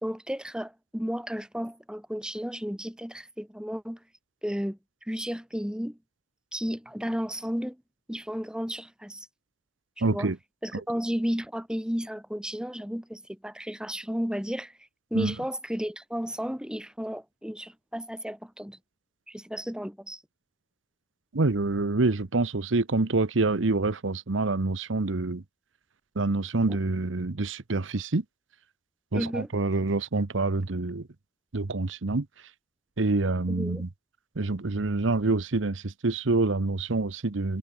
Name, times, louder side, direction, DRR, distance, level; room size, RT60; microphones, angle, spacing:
voice 1, 0.0-4.0 4.4-6.0 6.5-7.8 8.1-9.3 10.0-10.3 10.6-14.7 15.1-18.8 19.3-20.2 26.7-26.8 29.1-29.5 33.5-33.9, equal, 5° right, 2.2 m, -33 dB
voice 2, 10.0-10.4 15.1-15.3 21.3-25.4 26.2-28.2 29.1-31.1 31.5-32.3 33.0-33.9 34.4-37.6, right 3 dB, 90° right, 1.0 m, -26 dB
head